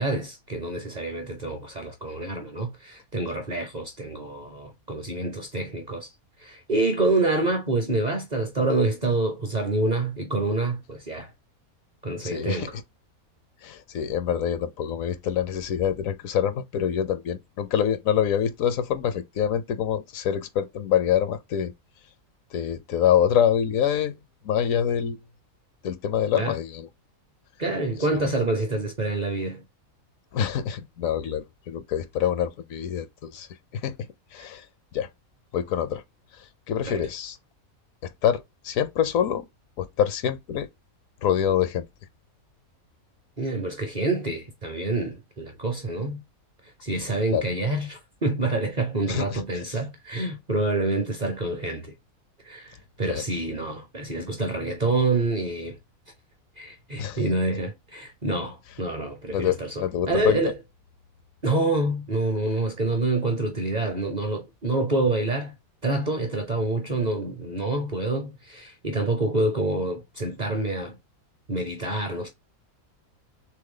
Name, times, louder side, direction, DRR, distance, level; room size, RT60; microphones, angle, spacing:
voice 1, 0.0-6.1 6.4-11.3 12.0-12.8 26.4-26.5 27.6-29.6 36.9-37.1 43.4-46.2 46.8-51.9 52.4-55.8 56.6-60.5 61.4-65.5 65.8-71.0 71.5-72.3, right 2 dB, 40° right, 0.6 m, -27 dB
voice 2, 12.2-12.7 13.6-21.7 22.5-24.2 24.4-25.2 25.8-26.9 30.3-33.5 33.7-33.9 34.3-34.6 34.9-35.1 35.5-36.0 36.7-37.4 38.0-39.4 39.8-40.7 41.2-41.9 47.3-47.4 49.1-49.4 53.1-53.2 57.0-57.2 59.3-60.4, left 9 dB, 70° left, 1.0 m, -25 dB
3.3 x 3.2 x 3.7 m
omnidirectional pair, 1.5 m